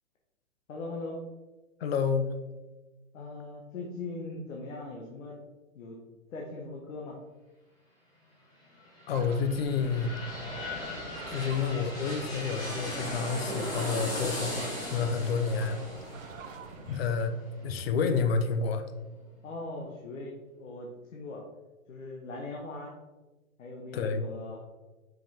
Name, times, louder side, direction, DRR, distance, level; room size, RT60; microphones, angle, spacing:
voice 1, 0.7-1.2 3.1-5.4 5.7-6.0 6.3-7.2 16.8-17.1 19.4-21.4 21.9-22.9 23.6-24.6, left 2 dB, 65° left, -1 dB, 1.2 m, -40 dB
voice 2, 1.8-2.3 9.1-10.1 11.3-15.8 16.9-17.3 17.6-18.8 23.9-24.2, left 5 dB, 45° left, 9 dB, 0.7 m, -29 dB
sound 1, 8.7-18.4 18.8-18.9, left 1 dB, 10° left, 0.9 m, -38 dB
sound 2, 9.1-17.0, right 6 dB, 60° right, 0.7 m, -47 dB
5.4 x 5.2 x 3.5 m, 1.2 s
hypercardioid pair, 145°, 43 cm